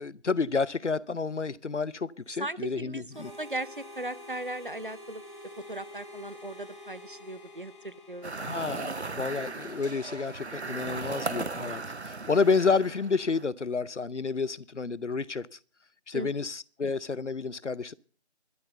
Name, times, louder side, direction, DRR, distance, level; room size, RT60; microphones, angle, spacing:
voice 1, 0.0-3.3 8.4-15.5 16.1-17.9, left 4 dB, 85° left, 0.8 m, -30 dB
voice 2, 2.4-5.2 5.7-8.6 11.2-11.5 16.1-16.5, right 1 dB, 50° right, 0.7 m, -38 dB
Harmonica, 3.1-9.5, left 1 dB, 25° left, 2.8 m, -48 dB
sound 1, 8.2-13.5, right 3 dB, 70° right, 0.9 m, -37 dB
12.0 x 9.6 x 7.9 m
figure-of-eight pair, 175°, 34 cm